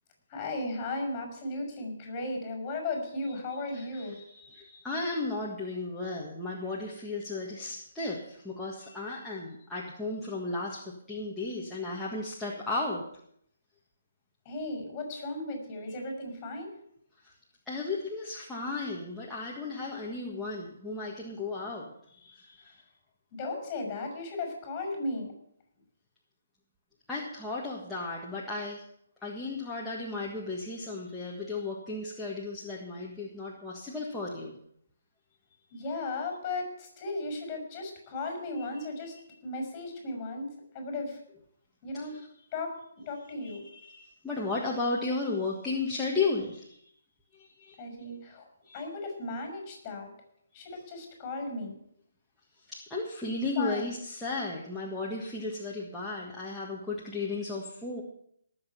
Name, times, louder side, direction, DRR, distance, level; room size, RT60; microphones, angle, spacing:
voice 1, 0.3-4.2 14.4-16.7 23.3-25.3 35.7-39.1 39.4-40.5 40.7-41.2 41.8-42.2 42.5-42.8 43.1-43.6 47.8-48.5 48.7-50.1 50.5-51.8 53.6-53.8, left 2 dB, 20° left, 3 dB, 5.9 m, -35 dB
voice 2, 3.7-13.0 17.2-17.3 17.7-22.8 27.1-28.8 29.2-34.6 42.1-42.3 43.4-46.9 47.3-47.8 48.6-48.8 52.7-58.0, left 3 dB, 5° left, -6 dB, 1.6 m, -35 dB
19.0 x 7.4 x 5.8 m, 0.70 s
hypercardioid pair, 160°, 0 cm